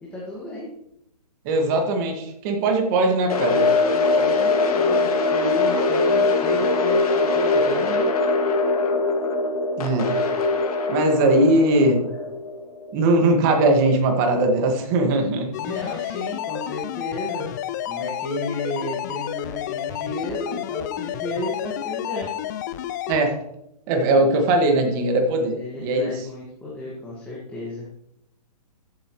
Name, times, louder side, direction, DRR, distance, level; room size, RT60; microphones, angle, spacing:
voice 1, 0.0-0.7 3.9-8.0 15.5-17.5 17.9-22.3 25.5-27.9, left 1 dB, 5° left, -6 dB, 1.9 m, -33 dB
voice 2, 1.4-3.7 9.8-10.2 10.9-12.0 12.9-15.8 23.1-23.4 23.9-26.1, right 2 dB, 30° right, 3 dB, 2.0 m, -20 dB
sound 1, 3.3-13.4, left 3 dB, 65° left, 2.2 m, -22 dB
sound 2, 15.5-23.2, left 11 dB, 30° left, 0.4 m, -30 dB
14.5 x 8.5 x 3.2 m, 0.81 s
hypercardioid pair, 150°, 21 cm